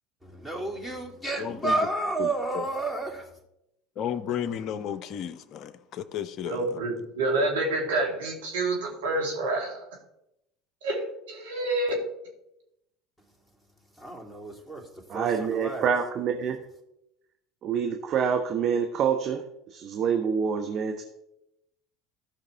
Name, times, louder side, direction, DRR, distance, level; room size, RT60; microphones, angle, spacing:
voice 1, 0.2-3.3 14.0-14.8 15.1-15.9, right 2 dB, ahead, -2 dB, 3.0 m, -31 dB
voice 2, 1.4-1.9 2.2-2.7 4.0-6.8, left 9 dB, 50° left, 12 dB, 0.8 m, -33 dB
voice 3, 6.5-9.8 10.8-12.0, right 2 dB, 80° right, -1 dB, 2.8 m, -28 dB
voice 4, 15.1-16.6 17.6-19.4 19.7-21.0, right 7 dB, 50° right, 4 dB, 1.0 m, -26 dB
15.5 x 5.9 x 3.4 m, 0.85 s
hypercardioid pair, 75°, 0 cm